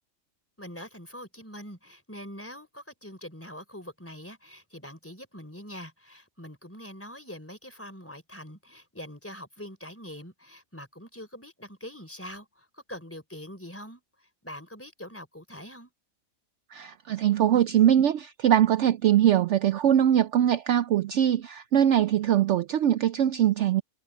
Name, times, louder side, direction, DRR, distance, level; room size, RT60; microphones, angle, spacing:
voice 1, 0.6-15.9, equal, 10° left, 3.7 m, -43 dB
voice 2, 16.7-23.8, right 10 dB, 65° right, 0.8 m, -22 dB
omnidirectional pair, 1.4 m